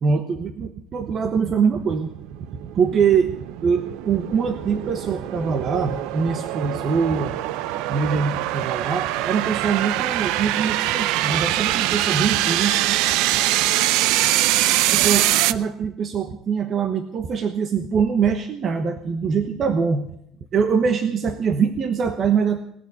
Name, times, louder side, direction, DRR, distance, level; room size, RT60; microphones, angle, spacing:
voice 1, 0.0-2.1 2.7-3.3 3.6-7.3 7.9-12.8 14.9-20.0 20.5-22.6, right 6 dB, 40° right, 8 dB, 1.1 m, -23 dB
sound 1, 1.0-15.5, right 15 dB, 75° right, 0.5 m, -23 dB
19.0 x 6.8 x 9.6 m, 0.72 s
cardioid pair, 135°, 0 cm